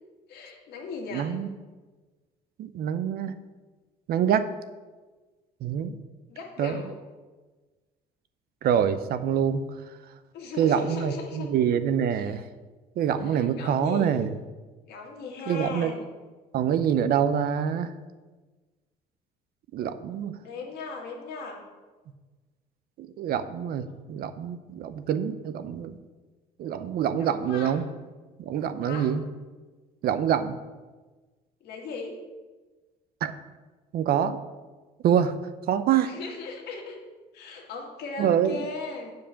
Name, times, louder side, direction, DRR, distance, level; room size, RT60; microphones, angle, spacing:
voice 1, 0.3-1.3 6.3-7.0 10.3-11.5 12.1-12.4 13.2-14.2 14.9-16.0 20.4-21.7 23.9-24.1 27.2-27.7 28.8-29.1 31.6-32.2 36.0-37.0 37.3-39.2, left 4 dB, 75° left, 0 dB, 2.0 m, -38 dB
voice 2, 1.1-1.5 2.6-3.3 4.1-4.5 5.6-6.0 6.6-6.8 8.6-9.7 10.6-12.4 13.0-14.3 15.5-15.9 16.5-17.9 19.7-20.4 23.0-26.0 26.6-27.8 28.4-29.2 30.0-30.6 33.2-33.3 33.9-34.4 35.0-35.4 35.7-36.1 38.2-38.6, right 8 dB, 65° right, 11 dB, 0.6 m, -25 dB
7.7 x 4.9 x 6.9 m, 1.3 s
cardioid pair, 110°, 17 cm